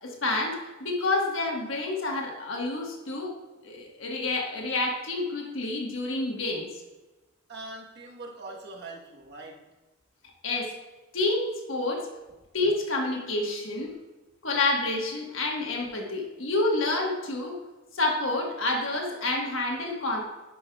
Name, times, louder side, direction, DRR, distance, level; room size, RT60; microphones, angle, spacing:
voice 1, 0.0-3.4 3.6-6.7 10.4-10.7 11.1-12.1 12.5-13.9 14.4-17.6 17.9-20.2, left 2 dB, 65° left, 0 dB, 1.3 m, -28 dB
voice 2, 7.5-9.7, right 2 dB, 50° right, -1 dB, 1.2 m, -42 dB
9.6 x 6.1 x 2.3 m, 1.1 s
head